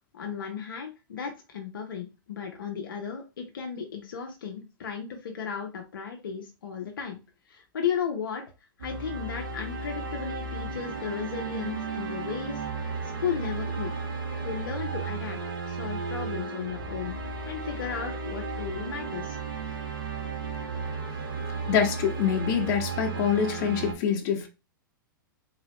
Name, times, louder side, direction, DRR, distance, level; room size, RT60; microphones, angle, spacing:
voice 1, 0.1-7.2 7.5-8.4 8.8-12.6 13.2-13.9 14.4-15.4 15.7-17.1 17.5-19.4, left 7 dB, 75° left, 0.8 m, -34 dB
sound 1, 8.8-23.9, right 4 dB, 80° right, 1.2 m, -34 dB
voice 2, 21.7-24.5, left 7 dB, 45° left, 1.2 m, -25 dB
3.8 x 3.0 x 3.0 m
hypercardioid pair, 105°, 12 cm